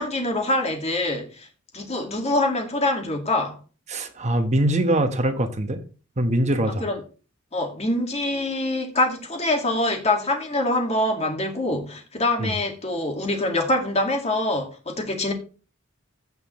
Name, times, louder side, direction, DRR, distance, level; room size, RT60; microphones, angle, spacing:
voice 1, 0.0-1.5 1.7-3.6 6.8-7.0 7.5-15.3, left 2 dB, 30° left, 2.0 m, -24 dB
voice 2, 3.9-5.8 6.2-6.9 12.4-12.5, right 1 dB, 35° right, 1.2 m, -22 dB
15.5 x 5.6 x 3.2 m
head